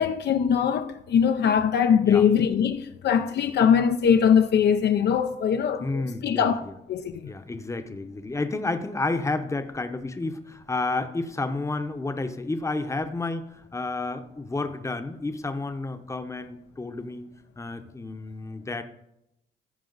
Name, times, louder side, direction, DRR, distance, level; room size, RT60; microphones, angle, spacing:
voice 1, 0.0-7.3, left 7 dB, 60° left, 0.5 m, -22 dB
voice 2, 5.8-6.7 7.2-17.3 17.6-18.8, left 3 dB, 15° left, 0.8 m, -31 dB
14.5 x 5.0 x 4.0 m
cardioid pair, 90°, 20 cm